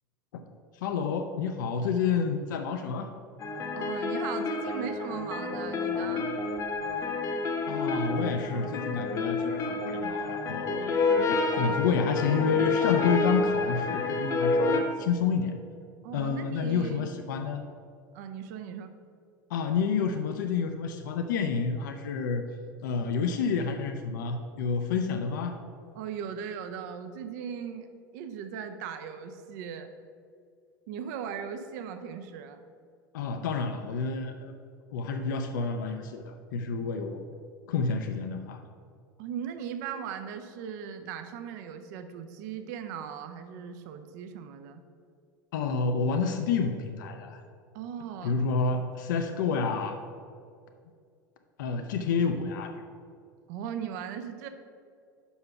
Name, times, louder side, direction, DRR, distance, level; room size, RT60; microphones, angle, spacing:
voice 1, 0.7-3.1 7.7-15.5 16.1-17.6 19.5-22.4 22.8-25.6 33.1-34.5 34.9-37.2 37.7-38.6 45.5-47.4 48.2-50.0 51.6-52.8, left 5 dB, 60° left, 6 dB, 0.5 m, -29 dB
sound 1, 3.4-14.8, left 3 dB, 30° left, 0.9 m, -29 dB
voice 2, 3.7-6.3 16.0-17.1 18.1-18.9 25.9-27.9 28.1-29.9 30.9-32.6 39.2-44.8 47.7-48.3 53.5-54.5, right 8 dB, 55° right, 8 dB, 0.6 m, -38 dB
5.6 x 5.5 x 5.7 m, 2.3 s
figure-of-eight pair, 80°, 11 cm